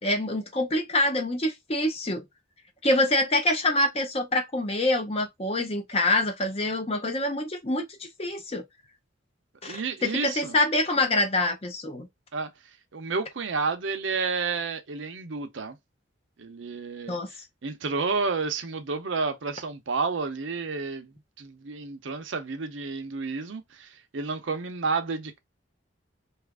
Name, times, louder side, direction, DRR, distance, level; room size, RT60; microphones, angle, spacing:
voice 1, 0.0-2.2 2.8-8.6 9.6-12.1 17.1-17.3, left 1 dB, 30° left, 0.6 m, -26 dB
voice 2, 9.6-10.6 12.3-12.5 12.9-15.8 16.4-17.2 17.6-21.1 21.4-25.4, right 4 dB, 70° right, 0.6 m, -30 dB
2.9 x 2.4 x 3.5 m
head